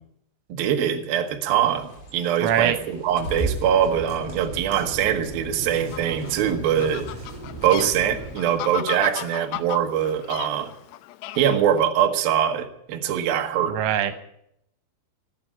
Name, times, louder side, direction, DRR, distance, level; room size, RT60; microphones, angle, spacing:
voice 1, 0.5-7.1 7.6-10.7 11.4-13.8, right 9 dB, 65° right, 4 dB, 2.6 m, -23 dB
Bird, 1.6-8.7, right 2 dB, 50° left, 5.3 m, -38 dB
voice 2, 2.4-2.8 13.7-14.1, right 10 dB, 85° right, 9 dB, 3.6 m, -22 dB
sound 1, 3.1-8.5, right 2 dB, 35° right, 8.1 m, -37 dB
Fowl, 5.7-11.9, left 14 dB, 80° left, 2.6 m, -36 dB
18.0 x 8.7 x 8.7 m, 0.75 s
omnidirectional pair, 5.5 m